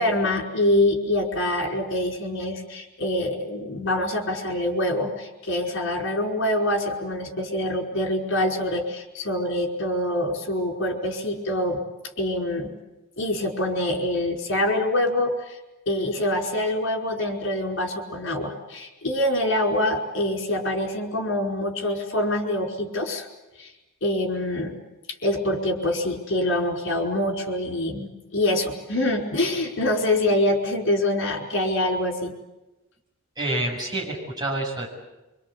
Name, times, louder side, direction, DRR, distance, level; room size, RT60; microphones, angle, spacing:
voice 1, 0.0-11.8 12.2-12.7 13.2-15.6 15.9-23.3 23.6-23.7 24.0-24.8 25.2-32.3, left 1 dB, 55° left, 3 dB, 5.0 m, -25 dB
voice 2, 33.4-34.9, right 1 dB, 20° right, -3 dB, 7.6 m, -28 dB
25.5 x 25.5 x 8.4 m, 1.0 s
head